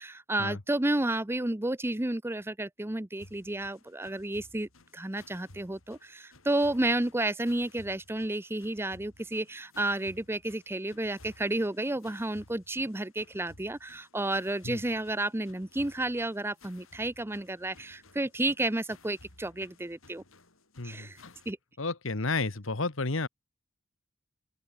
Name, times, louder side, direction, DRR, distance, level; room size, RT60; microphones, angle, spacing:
voice 1, 0.0-20.2 20.8-21.2 21.5-21.6, right 1 dB, 10° right, 0.7 m, -31 dB
sound 1, 3.2-21.5, left 2 dB, 85° left, 7.4 m, -57 dB
voice 2, 20.8-21.3 21.8-23.3, left 3 dB, 70° left, 1.5 m, -32 dB
open air
head